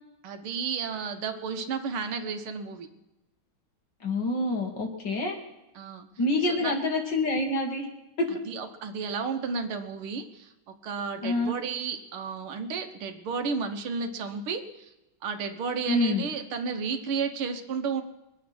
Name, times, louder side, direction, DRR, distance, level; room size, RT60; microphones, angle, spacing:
voice 1, 0.2-2.9 5.8-6.1 6.5-6.8 8.3-14.9 15.2-18.0, right 5 dB, 85° right, 6 dB, 2.0 m, -32 dB
voice 2, 4.0-5.4 6.2-7.9 11.2-11.6 15.9-16.2, left 2 dB, 55° left, 1 dB, 2.6 m, -27 dB
22.5 x 8.4 x 6.0 m, 0.95 s
omnidirectional pair, 2.3 m